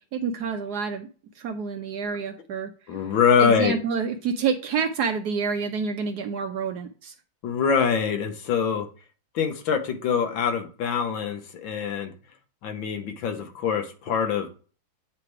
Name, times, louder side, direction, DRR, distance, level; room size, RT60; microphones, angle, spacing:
voice 1, 0.1-1.1 1.4-2.7 3.4-7.1, right 5 dB, 70° right, 6 dB, 1.0 m, -28 dB
voice 2, 2.9-3.7 7.4-8.9 9.3-12.1 12.6-14.5, left 7 dB, 80° left, 6 dB, 1.7 m, -24 dB
8.6 x 3.3 x 4.6 m, 0.38 s
omnidirectional pair, 2.1 m